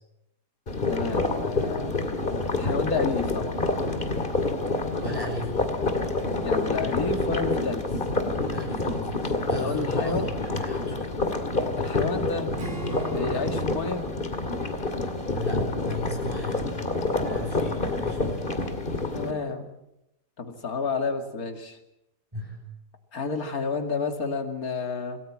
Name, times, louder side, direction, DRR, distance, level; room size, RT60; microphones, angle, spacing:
sound 1, 0.7-19.3, left 2 dB, 30° left, 2.5 m, -28 dB
voice 1, 0.9-2.0 2.5-3.7 6.4-7.9 9.6-10.3 11.8-12.5 13.1-14.1 19.1-19.7 20.4-21.8 23.1-25.2, left 4 dB, 60° left, 5 dB, 2.8 m, -30 dB
voice 2, 5.0-5.7 8.5-11.1 15.3-16.7 17.3-18.4 22.3-22.6, left 1 dB, 15° right, -1 dB, 7.0 m, -36 dB
Acoustic guitar / Strum, 12.6-16.1, right 4 dB, 35° right, 2.4 m, -41 dB
27.5 x 18.5 x 7.6 m, 0.87 s
omnidirectional pair, 1.7 m